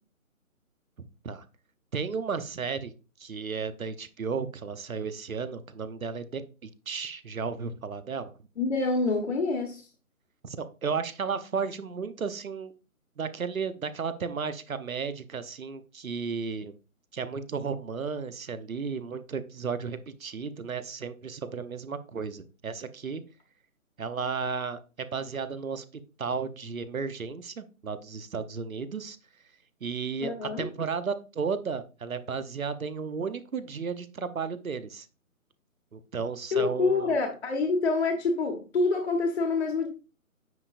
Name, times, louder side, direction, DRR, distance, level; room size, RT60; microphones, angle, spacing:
voice 1, 1.9-2.9 3.2-8.3 10.4-12.7 13.2-16.8 17.1-23.2 24.0-25.8 26.2-29.2 29.8-35.1 35.9-37.1, right 5 dB, 70° right, 0.9 m, -34 dB
voice 2, 8.6-9.8 30.2-30.7 36.5-39.9, left 3 dB, 50° left, 1.4 m, -26 dB
9.4 x 5.2 x 2.5 m
figure-of-eight pair, 145°, 43 cm